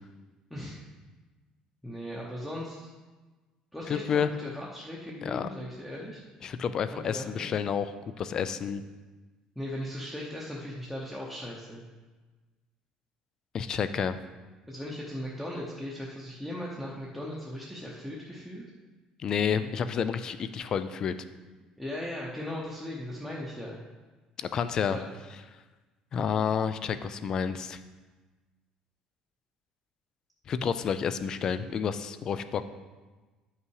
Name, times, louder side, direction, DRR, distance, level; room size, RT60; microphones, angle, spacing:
voice 1, 0.5-0.8 1.8-2.9 3.7-6.2 6.9-7.5 9.6-11.8 14.7-18.6 21.8-23.8 24.9-25.0, left 1 dB, ahead, -4 dB, 0.9 m, -38 dB
voice 2, 3.9-4.3 5.2-5.5 6.4-8.8 13.5-14.2 19.2-21.1 24.4-25.0 26.1-27.8 30.5-32.6, left 7 dB, 30° left, 12 dB, 0.4 m, -30 dB
9.8 x 5.7 x 4.7 m, 1.3 s
cardioid pair, 170°, 2 cm